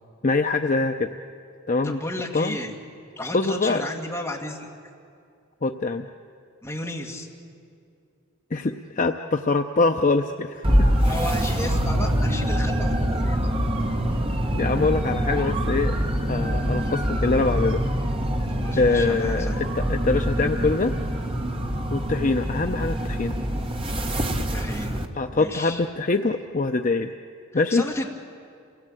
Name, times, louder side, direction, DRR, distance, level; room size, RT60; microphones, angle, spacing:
voice 1, 0.2-1.1 1.7-2.0 2.3-2.6 3.3-3.8 5.6-6.0 8.5-10.9 14.5-16.0 16.3-17.8 18.7-20.9 21.9-23.4 25.2-27.1 27.5-27.8, left 3 dB, 35° left, 6 dB, 0.6 m, -24 dB
voice 2, 1.8-2.7 3.2-4.7 6.6-7.3 11.0-13.4 18.5-19.6 24.5-25.0 25.3-25.8 27.5-28.1, left 1 dB, 10° left, -1 dB, 2.2 m, -33 dB
sound 1, 10.6-25.1, equal, 25° right, 1.3 m, -25 dB
28.5 x 18.0 x 9.0 m, 2.4 s
head